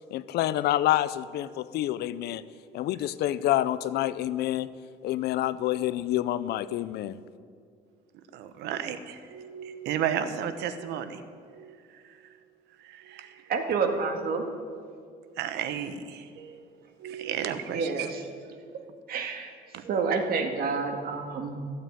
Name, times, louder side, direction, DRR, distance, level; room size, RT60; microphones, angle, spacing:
voice 1, 0.1-2.4 2.7-4.7 5.0-7.2, left 13 dB, 75° left, 16 dB, 0.6 m, -27 dB
voice 2, 8.3-11.2 11.5-12.0 12.8-13.4 15.4-16.7 17.0-18.1 19.7-20.1, right 9 dB, 80° right, 10 dB, 1.1 m, -34 dB
voice 3, 13.5-14.4 17.7-18.2 19.1-19.5 19.9-21.6, right 5 dB, 60° right, 4 dB, 2.1 m, -28 dB
15.0 x 8.8 x 9.1 m, 2.2 s
cardioid pair, 110°, 17 cm